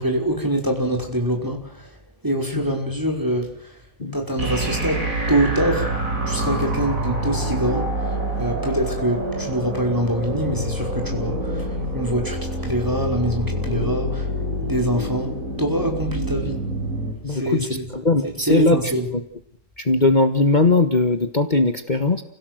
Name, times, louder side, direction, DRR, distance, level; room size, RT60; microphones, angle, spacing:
voice 1, 0.0-2.0 2.2-3.9 4.1-5.9 6.3-14.3 14.6-16.6 17.3-17.9 18.2-19.1, right 1 dB, 10° right, 2 dB, 5.4 m, -25 dB
sound 1, 4.4-17.1, right 1 dB, 55° right, 5.7 m, -26 dB
voice 2, 17.2-17.7 17.9-18.8 19.1-19.2 19.8-22.2, left 2 dB, 30° left, 8 dB, 1.6 m, -19 dB
29.5 x 17.0 x 7.9 m, 0.75 s
omnidirectional pair, 1.7 m